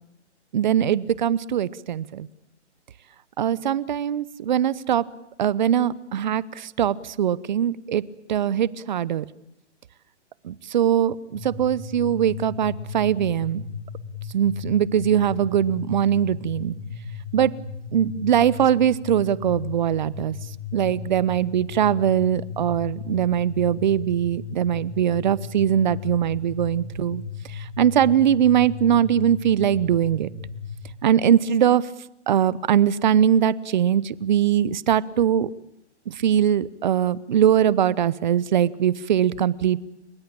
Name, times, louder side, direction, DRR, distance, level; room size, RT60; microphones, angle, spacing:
voice 1, 0.5-2.3 3.4-5.0 5.4-8.0 8.3-9.2 10.4-13.6 14.3-16.7 17.3-17.5 17.9-20.4 20.7-27.2 27.8-30.3 31.0-31.8 32.3-35.5 36.1-39.8, right 9 dB, 40° right, 20 dB, 0.9 m, -21 dB
sound 1, 11.3-30.9, left 6 dB, 20° left, 1.8 m, -36 dB
30.0 x 17.0 x 8.8 m, 0.82 s
hypercardioid pair, 160°, 35 cm